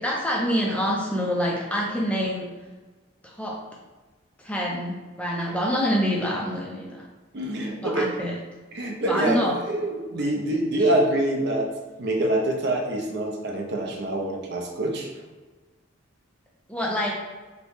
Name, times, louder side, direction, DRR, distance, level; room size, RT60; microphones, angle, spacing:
voice 1, 0.0-2.5 3.2-3.5 4.4-7.1 7.8-8.4 9.1-9.6 10.1-10.2 10.8-10.9 16.7-17.1, equal, 5° left, -2 dB, 0.3 m, -26 dB
voice 2, 7.3-8.1 8.7-9.4 9.7-11.7 12.0-15.1, right 1 dB, 55° right, 2 dB, 0.5 m, -25 dB
2.9 x 2.6 x 3.4 m, 1.3 s
head